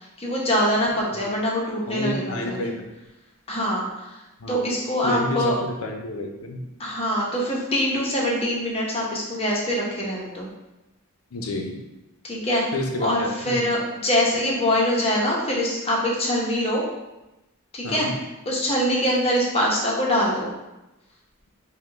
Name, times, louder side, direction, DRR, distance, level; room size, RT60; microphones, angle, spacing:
voice 1, 0.2-2.6 3.5-4.2 4.5-5.5 6.8-10.5 12.2-12.6 13.0-16.8 17.7-18.1 18.5-20.5, equal, 25° left, -3 dB, 0.8 m, -24 dB
voice 2, 1.9-2.8 4.4-4.6 5.0-6.6 11.3-11.8 12.7-13.8 17.8-18.1, left 1 dB, 75° left, 2 dB, 0.6 m, -29 dB
5.0 x 2.3 x 3.3 m, 0.98 s
head